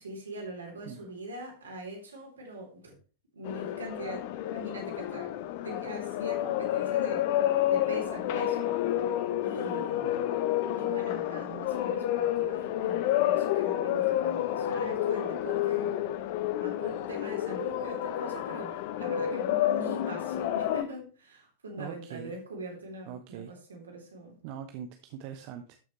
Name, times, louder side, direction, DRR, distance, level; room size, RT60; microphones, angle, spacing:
voice 1, 0.0-3.0 3.3-5.3 5.6-7.3 7.7-8.8 9.4-10.3 10.8-16.0 16.6-24.4, right 1 dB, 70° right, 3.4 m, -42 dB
sound 1, 3.4-20.8, left 12 dB, 50° left, 0.7 m, -29 dB
voice 2, 21.8-22.3 23.1-23.5 24.4-25.8, right 9 dB, 45° right, 0.8 m, -42 dB
13.0 x 6.2 x 3.2 m
figure-of-eight pair, 90°, 0 cm